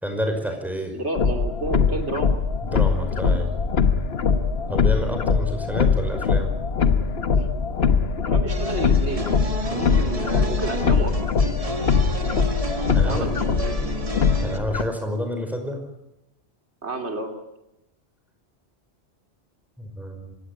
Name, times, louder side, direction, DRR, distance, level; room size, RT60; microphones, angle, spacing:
voice 1, 0.0-1.0 2.6-3.5 4.7-6.5 12.9-13.3 14.4-15.8 19.8-20.4, equal, ahead, 5 dB, 5.3 m, -29 dB
voice 2, 0.9-2.4 7.4-7.5 8.3-9.3 9.6-11.4 13.0-14.1 16.8-17.3, right 2 dB, 85° right, 5 dB, 3.2 m, -31 dB
sound 1, 1.2-14.8, left 5 dB, 65° left, 1.4 m, -22 dB
sound 2, 8.5-14.6, right 2 dB, 30° right, 2.0 m, -32 dB
26.5 x 17.0 x 10.0 m, 0.89 s
omnidirectional pair, 1.1 m